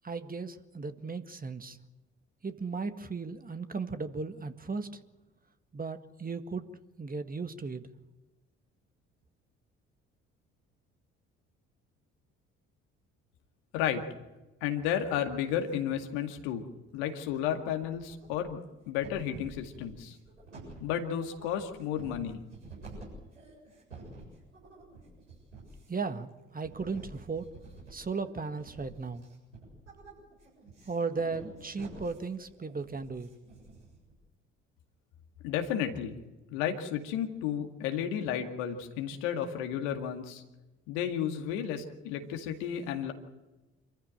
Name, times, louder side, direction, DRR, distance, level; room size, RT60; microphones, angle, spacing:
voice 1, 0.0-1.8 2.4-4.9 5.7-6.7 7.0-7.9 25.9-27.5 27.9-29.3 30.9-33.3, right 4 dB, 25° right, 9 dB, 1.8 m, -36 dB
voice 2, 13.7-14.1 14.6-16.6 16.9-20.2 20.8-22.4 35.4-36.2 36.5-40.4 40.9-43.1, left 9 dB, 70° left, 5 dB, 2.2 m, -32 dB
sound 1, 16.9-17.5 17.8-18.6 19.0-34.1, right 2 dB, 90° right, 7.8 m, -50 dB
27.0 x 15.0 x 8.9 m, 1.1 s
figure-of-eight pair, 50°, 36 cm